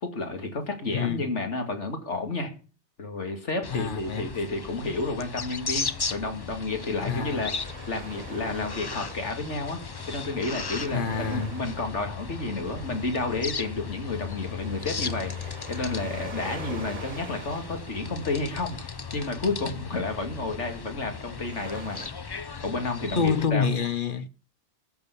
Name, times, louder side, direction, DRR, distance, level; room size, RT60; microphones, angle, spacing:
voice 1, 0.0-2.5 3.0-7.5 7.9-9.8 10.1-22.0 22.6-23.7, left 3 dB, 80° left, 2.5 m, -31 dB
voice 2, 0.9-1.3 3.7-4.3 7.1-7.5 10.9-11.5 23.2-24.3, left 5 dB, 50° left, 0.9 m, -27 dB
sound 1, 3.6-23.4, left 5 dB, 30° left, 0.4 m, -37 dB
sound 2, 5.8-22.1, right 3 dB, 35° right, 1.3 m, -45 dB
14.0 x 6.8 x 8.2 m
omnidirectional pair, 1.2 m